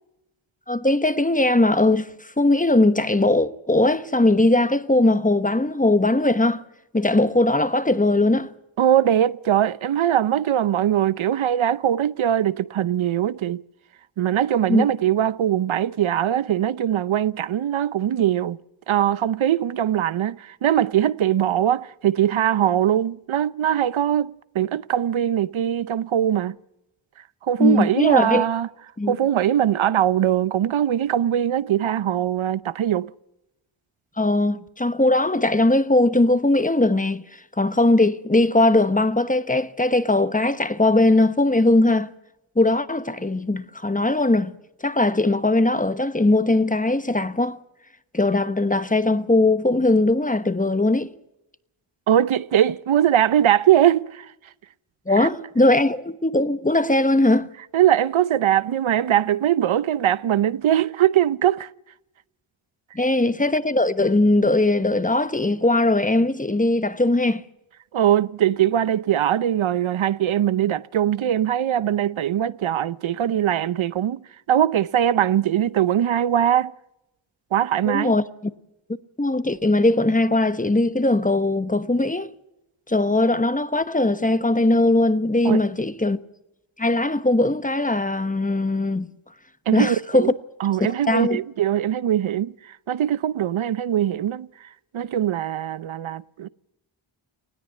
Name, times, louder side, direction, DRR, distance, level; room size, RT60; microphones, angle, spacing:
voice 1, 0.7-6.6 6.9-8.5 14.7-14.9 27.6-28.4 29.0-29.1 34.2-42.1 42.6-44.5 44.8-47.6 48.1-51.1 55.1-57.5 62.9-67.4 77.9-78.3 79.2-82.3 82.9-86.2 86.8-89.1 89.7-90.3 90.8-91.4, left 2 dB, 15° left, 1.1 m, -20 dB
voice 2, 8.8-13.6 14.2-18.6 18.9-26.6 27.5-28.7 29.1-33.1 52.1-54.3 55.2-55.3 57.7-61.7 67.9-76.7 77.5-78.2 85.4-85.6 89.7-90.3 90.6-94.5 94.9-96.5, right 10 dB, 75° right, 0.7 m, -21 dB
20.0 x 17.0 x 8.3 m
wide cardioid pair, 70°, 48 cm